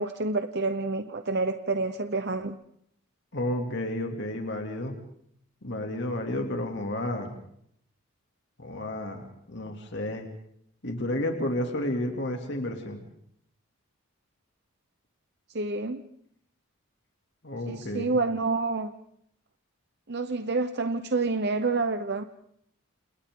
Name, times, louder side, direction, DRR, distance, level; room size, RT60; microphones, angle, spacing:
voice 1, 0.0-2.6 15.5-16.0 17.7-18.9 20.1-22.2, right 3 dB, 50° right, 9 dB, 0.9 m, -28 dB
voice 2, 3.3-4.9 5.6-7.3 8.6-10.3 10.8-13.0 17.4-18.2, left 1 dB, 55° left, 3 dB, 2.8 m, -31 dB
30.0 x 29.0 x 3.9 m, 0.70 s
head